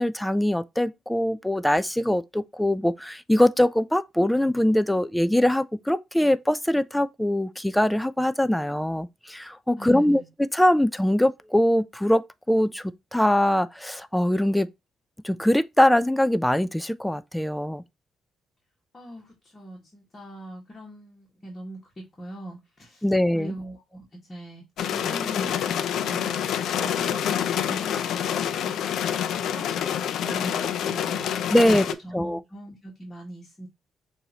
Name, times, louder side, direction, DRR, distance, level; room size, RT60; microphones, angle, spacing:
voice 1, 0.0-10.2 10.5-12.8 13.1-14.7 15.2-17.8 23.0-23.5 31.5-31.9 32.1-32.4, left 1 dB, 5° left, 0.3 m, -22 dB
voice 2, 9.8-10.3 18.9-23.1 23.3-26.4 26.7-31.5 31.7-33.7, right 1 dB, 30° left, 1.6 m, -41 dB
sound 1, 24.8-31.9, left 9 dB, 75° left, 0.5 m, -27 dB
6.5 x 2.7 x 2.9 m
cardioid pair, 90°, 0 cm